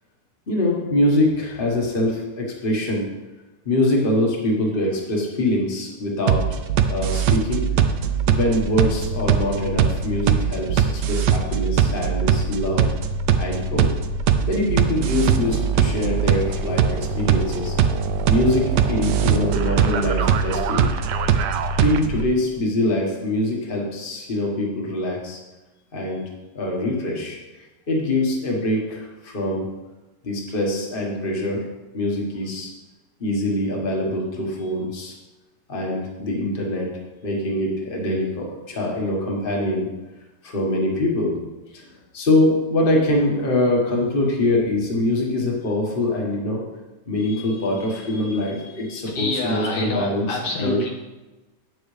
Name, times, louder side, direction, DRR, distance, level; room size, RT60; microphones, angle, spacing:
voice 1, 0.5-3.1 3.6-6.6 6.9-7.7 8.3-12.9 13.4-13.9 14.5-17.7 18.3-20.9 21.8-25.4 25.9-26.3 26.5-29.6 30.2-31.6 31.9-32.7 33.2-35.1 35.7-36.9 37.2-39.9 40.4-41.4 41.7-41.9 42.1-46.6 47.1-50.3 50.6-50.8, left 1 dB, 30° left, -1 dB, 1.6 m, -23 dB
sound 1, 6.3-22.2, right 7 dB, 80° right, 1.2 m, -21 dB
voice 2, 49.1-50.9, left 2 dB, 75° left, 0 dB, 1.9 m, -26 dB
9.0 x 8.1 x 3.3 m, 1.1 s
omnidirectional pair, 1.9 m